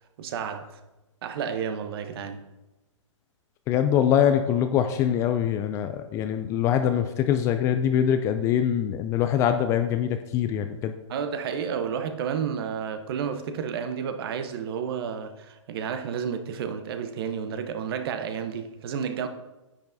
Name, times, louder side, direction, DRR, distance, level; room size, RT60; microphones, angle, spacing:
voice 1, 0.2-0.8 1.2-2.4 11.1-19.3, right 7 dB, 45° right, 0.9 m, -31 dB
voice 2, 3.7-10.9, left 9 dB, 15° left, 0.3 m, -23 dB
9.9 x 8.8 x 2.7 m
hypercardioid pair, 130°, 17 cm